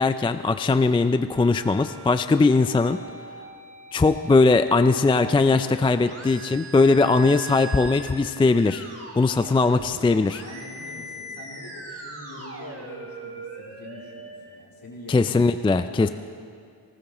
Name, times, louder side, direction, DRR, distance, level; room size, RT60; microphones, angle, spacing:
voice 1, 0.0-3.0 3.9-8.9 9.2-10.4 15.1-16.1, left 3 dB, 15° left, 10 dB, 0.3 m, -20 dB
sound 1, 1.3-14.4, right 2 dB, 35° right, 3.0 m, -41 dB
voice 2, 10.1-15.5 16.0-16.1, left 1 dB, 55° left, -4 dB, 3.5 m, -44 dB
19.5 x 18.5 x 3.0 m, 2.4 s
wide cardioid pair, 100°, 42 cm